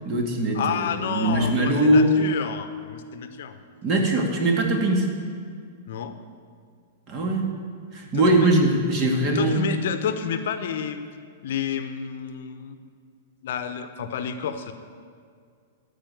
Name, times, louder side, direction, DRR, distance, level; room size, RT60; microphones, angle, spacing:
voice 1, 0.0-2.2 3.8-5.1 7.1-7.5 7.9-9.6, right 1 dB, 35° right, 2 dB, 2.1 m, -21 dB
voice 2, 0.5-3.6 5.9-6.2 8.1-8.5 9.3-11.0 11.4-12.8 13.4-14.7, left 7 dB, 60° left, 9 dB, 0.8 m, -30 dB
13.5 x 5.1 x 9.1 m, 2.2 s
figure-of-eight pair, 105°, 0 cm